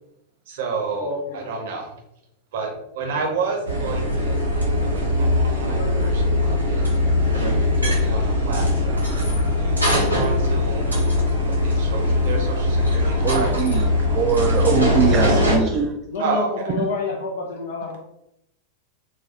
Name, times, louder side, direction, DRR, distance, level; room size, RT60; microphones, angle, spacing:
voice 1, 0.5-1.9 2.5-11.0 11.6-13.5 13.8-13.9 16.2-16.7, right 4 dB, 55° right, 2 dB, 0.8 m, -30 dB
voice 2, 1.0-1.5 5.0-5.1 5.7-6.1 8.2-8.7 10.0-10.3 10.8-10.9 14.2-14.3 16.1-18.0, left 3 dB, 55° left, 1 dB, 0.5 m, -30 dB
sound 1, 3.7-15.6, left 1 dB, 85° right, 0.9 m, -21 dB
voice 3, 13.2-16.0, right 7 dB, 35° right, 2 dB, 0.3 m, -22 dB
4.0 x 2.2 x 2.7 m, 0.83 s
figure-of-eight pair, 90°, 0 cm